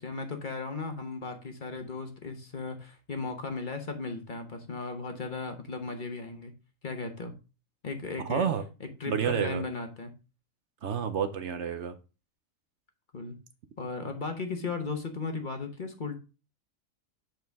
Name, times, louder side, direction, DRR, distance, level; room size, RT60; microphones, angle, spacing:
voice 1, 0.0-6.5 6.8-7.3 7.8-8.5 8.8-10.1 13.1-13.4 13.8-16.2, left 4 dB, 40° left, 5 dB, 1.0 m, -36 dB
voice 2, 8.3-8.6 9.1-9.6 10.8-11.9, right 7 dB, 65° right, 9 dB, 0.9 m, -29 dB
8.0 x 4.6 x 3.4 m, 0.32 s
omnidirectional pair, 1.4 m